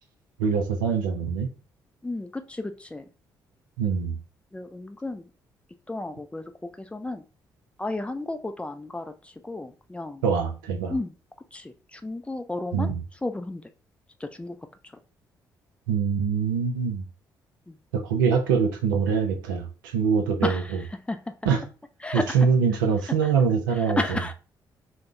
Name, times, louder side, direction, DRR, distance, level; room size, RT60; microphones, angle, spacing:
voice 1, 0.4-1.5 3.8-4.2 10.2-10.9 12.7-13.0 15.9-17.0 17.9-20.8 21.4-21.6 22.1-24.2, right 6 dB, 75° right, 5 dB, 0.4 m, -24 dB
voice 2, 2.0-3.1 4.5-5.3 5.9-7.2 7.8-10.2 10.9-11.1 11.5-12.9 13.2-13.6 14.2-14.6 17.7-17.8 20.4-21.3 22.0-22.5 23.2-23.3 23.7-24.3, left 2 dB, 10° left, 8 dB, 0.3 m, -32 dB
3.5 x 2.0 x 2.4 m, 0.34 s
figure-of-eight pair, 40°, 11 cm